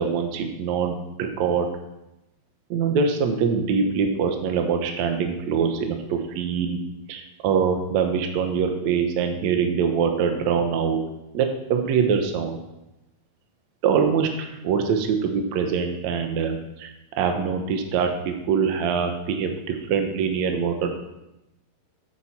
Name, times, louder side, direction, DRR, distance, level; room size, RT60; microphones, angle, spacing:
voice 1, 0.0-1.7 2.7-6.8 7.1-11.0 11.3-12.6 13.8-16.9 17.2-20.9, right 6 dB, 65° right, 5 dB, 2.1 m, -24 dB
9.2 x 7.5 x 5.9 m, 0.92 s
omnidirectional pair, 3.9 m